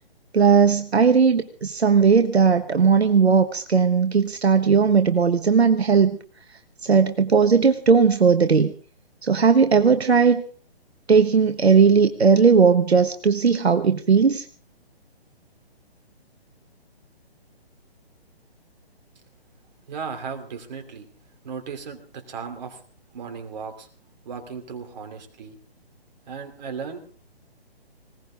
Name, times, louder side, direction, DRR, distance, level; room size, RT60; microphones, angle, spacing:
voice 1, 0.3-6.1 6.8-8.7 9.2-10.4 11.1-14.4, right 5 dB, 80° right, 8 dB, 1.3 m, -17 dB
voice 2, 19.9-21.1 21.4-22.8 23.1-23.9 24.2-25.6 26.3-27.0, right 6 dB, 45° right, 5 dB, 2.8 m, -36 dB
20.0 x 18.0 x 3.7 m, 0.42 s
figure-of-eight pair, 140°, 32 cm